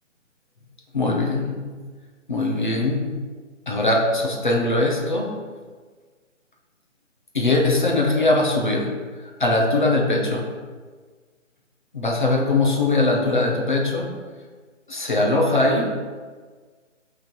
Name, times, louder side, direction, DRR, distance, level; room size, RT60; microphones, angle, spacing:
voice 1, 0.9-1.7 2.3-3.1 3.7-5.3 7.3-8.9 9.4-10.5 11.9-14.1 14.9-15.9, left 2 dB, 40° left, 0 dB, 1.0 m, -21 dB
5.5 x 3.7 x 5.9 m, 1.5 s
hypercardioid pair, 180°, 37 cm